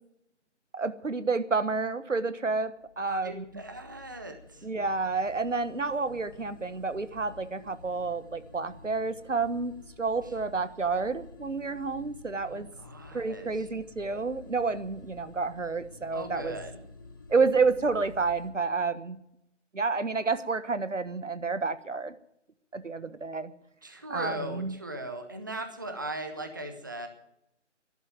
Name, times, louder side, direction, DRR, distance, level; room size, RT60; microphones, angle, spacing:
voice 1, 0.7-3.4 4.6-9.7 10.0-12.7 13.1-16.6 17.3-19.2 19.7-22.1 22.7-23.5 24.1-24.7, right 4 dB, 85° right, 13 dB, 1.4 m, -29 dB
sound 1, 2.7-18.5, left 3 dB, 15° left, 1.2 m, -51 dB
voice 2, 3.1-4.7 10.2-10.3 12.4-13.7 16.1-16.8 17.3-17.4 23.8-27.1, right 1 dB, 15° right, 7 dB, 0.7 m, -39 dB
12.0 x 12.0 x 9.1 m, 0.79 s
figure-of-eight pair, 160°, 37 cm